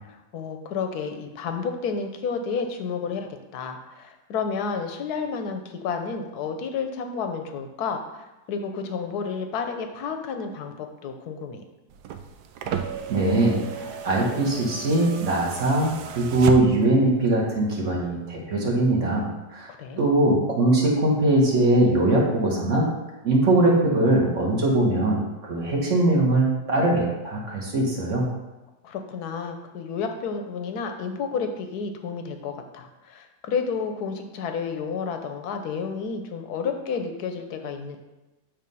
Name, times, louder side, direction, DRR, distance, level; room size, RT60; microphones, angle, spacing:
voice 1, 0.1-11.6 19.8-20.0 28.8-38.0, left 5 dB, 65° left, 6 dB, 1.2 m, -31 dB
sound 1, 11.9-17.0 18.2-18.3, right 8 dB, 70° right, 1.1 m, -34 dB
voice 2, 13.1-19.7 20.0-22.9 23.2-28.3, right 2 dB, 45° right, -2 dB, 1.7 m, -21 dB
8.9 x 3.2 x 5.4 m, 1.1 s
omnidirectional pair, 2.0 m